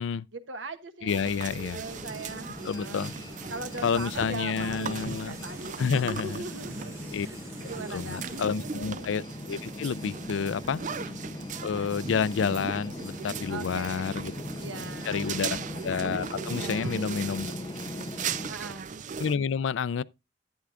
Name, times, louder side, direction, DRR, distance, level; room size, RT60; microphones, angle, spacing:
voice 1, 0.3-1.2 1.7-3.1 3.5-7.0 7.2-7.4 7.7-9.1 10.5-10.9 13.5-14.2 14.6-15.7 16.6-17.1 18.5-18.9, right 3 dB, 90° right, 1.1 m, -40 dB
voice 2, 1.0-1.8 2.6-3.1 3.8-5.4 5.8-6.4 7.1-7.3 7.9-10.8 11.6-14.3 15.1-15.6 15.8-17.5 19.2-20.0, left 6 dB, 90° left, 0.4 m, -29 dB
sound 1, 1.1-19.4, right 6 dB, 45° right, 0.5 m, -38 dB
sound 2, 1.3-8.4, right 1 dB, 15° right, 2.7 m, -52 dB
sound 3, 1.8-18.5, left 1 dB, 25° left, 0.7 m, -40 dB
11.5 x 9.6 x 2.4 m
head